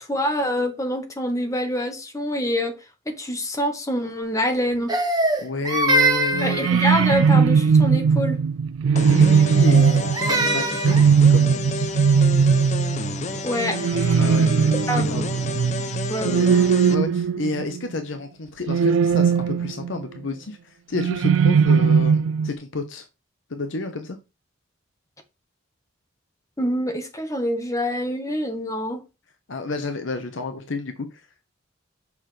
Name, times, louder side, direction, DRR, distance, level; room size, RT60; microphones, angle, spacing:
voice 1, 0.0-2.8 3.1-4.9 6.4-8.4 13.4-13.8 14.9-15.3 16.1-16.5 26.6-29.0, equal, 15° left, 1.2 m, -26 dB
Crying sobbing, 4.9-7.4 9.6-11.1, right 2 dB, 20° right, 1.2 m, -23 dB
voice 2, 5.4-6.7 9.0-11.9 14.1-15.2 15.8-23.1 23.5-24.2 29.5-31.5, left 3 dB, 70° left, 0.8 m, -30 dB
sound 1, 6.3-17.9 18.7-20.0 20.9-22.5, right 6 dB, 85° right, 0.3 m, -19 dB
sound 2, 9.0-17.0, left 3 dB, 35° left, 0.5 m, -31 dB
7.2 x 5.8 x 3.3 m
head